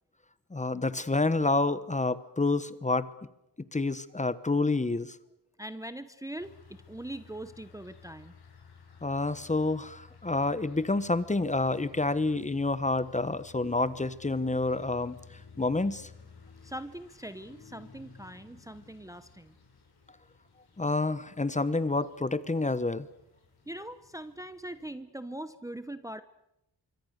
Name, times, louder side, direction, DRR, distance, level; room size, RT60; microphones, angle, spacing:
voice 1, 0.5-3.1 3.7-5.2 9.0-15.2 15.6-16.1 20.8-23.1, left 2 dB, 15° left, 15 dB, 1.1 m, -28 dB
voice 2, 5.6-8.3 16.6-19.5 23.7-26.2, right 1 dB, 10° right, 12 dB, 0.8 m, -41 dB
sound 1, 6.4-24.9, left 5 dB, 65° left, 6.1 m, -55 dB
26.0 x 24.5 x 6.6 m, 0.87 s
cardioid pair, 100°, 41 cm